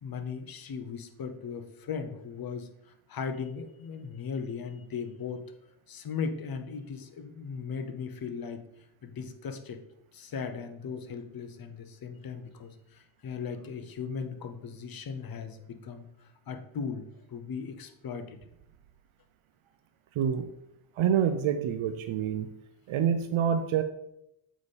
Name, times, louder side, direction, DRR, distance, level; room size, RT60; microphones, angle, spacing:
voice 1, 0.0-5.4 5.9-8.6 9.0-9.8 10.1-18.4, left 6 dB, 45° left, 8 dB, 0.8 m, -38 dB
voice 2, 20.2-20.5 21.0-22.5 22.9-23.8, right 8 dB, 75° right, 8 dB, 0.7 m, -27 dB
7.0 x 5.1 x 4.1 m, 0.80 s
cardioid pair, 130°, 49 cm